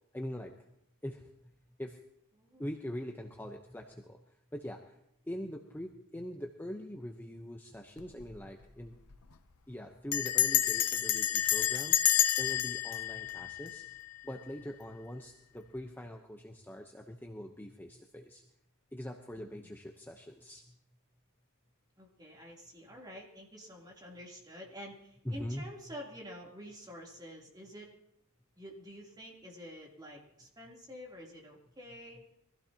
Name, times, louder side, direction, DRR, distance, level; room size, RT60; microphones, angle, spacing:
voice 1, 0.1-0.5 1.0-1.2 1.8-2.0 2.6-4.2 4.5-5.0 5.3-8.9 9.7-12.0 12.4-13.8 14.2-18.4 18.9-20.6 25.2-25.6, equal, 10° left, 2 dB, 0.9 m, -42 dB
voice 2, 2.3-2.7 19.3-19.7 22.0-27.9 28.6-32.2, equal, 20° right, -2 dB, 3.3 m, -48 dB
Bell, 8.0-8.4 8.6-8.7 8.9-9.3 10.1-14.2, left 12 dB, 85° left, 0.9 m, -29 dB
23.5 x 15.5 x 2.9 m, 0.81 s
head